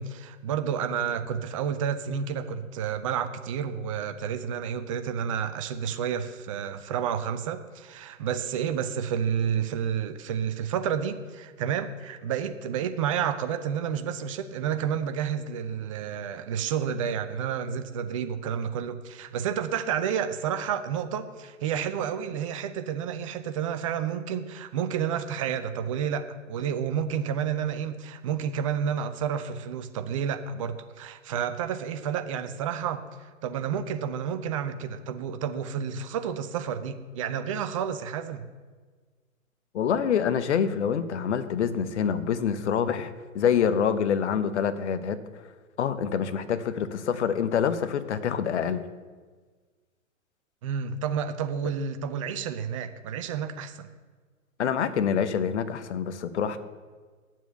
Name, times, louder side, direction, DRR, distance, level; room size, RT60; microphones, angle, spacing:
voice 1, 0.0-38.5 50.6-53.9, right 8 dB, 25° right, 10 dB, 0.5 m, -30 dB
voice 2, 39.7-45.2 45.8-48.8 54.6-56.6, left 7 dB, 55° left, 11 dB, 0.9 m, -26 dB
9.9 x 7.4 x 6.7 m, 1.4 s
figure-of-eight pair, 115°, 41 cm